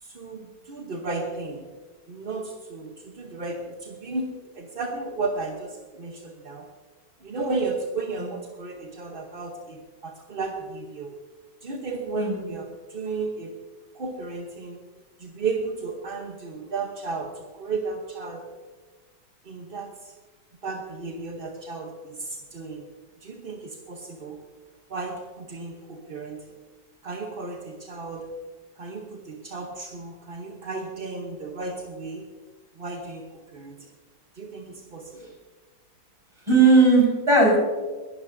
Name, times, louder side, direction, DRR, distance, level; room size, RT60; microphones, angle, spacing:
voice 1, 0.0-1.6 2.1-6.7 7.2-11.1 11.6-13.6 13.9-14.9 15.2-18.5 19.4-20.1 20.6-22.9 23.2-24.4 24.9-26.6 27.0-28.3 28.8-32.3 32.8-33.8 34.3-35.3, right 3 dB, 40° right, 2 dB, 0.8 m, -34 dB
voice 2, 36.5-37.6, right 3 dB, 15° right, -2 dB, 4.9 m, -17 dB
21.5 x 12.5 x 2.6 m, 1.4 s
omnidirectional pair, 2.1 m